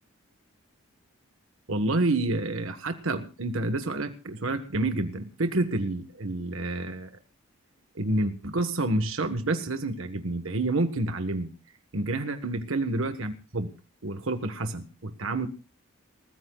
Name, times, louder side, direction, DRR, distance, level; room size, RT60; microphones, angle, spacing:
voice 1, 1.7-7.1 7.9-11.5 11.9-13.7 14.0-15.5, right 2 dB, 65° right, 7 dB, 1.4 m, -28 dB
28.0 x 15.0 x 2.4 m, 0.33 s
head